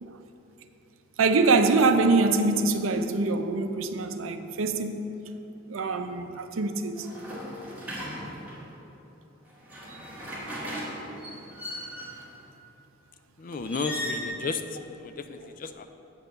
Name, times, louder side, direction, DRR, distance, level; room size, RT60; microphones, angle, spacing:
voice 1, 1.2-5.0 5.7-7.1, right 3 dB, 85° right, 0.5 m, -24 dB
sound 1, 6.9-8.7 9.5-12.3 13.6-14.3, equal, 10° right, 1.9 m, -37 dB
voice 2, 13.4-15.9, left 4 dB, 40° left, 0.4 m, -33 dB
8.1 x 4.4 x 6.4 m
head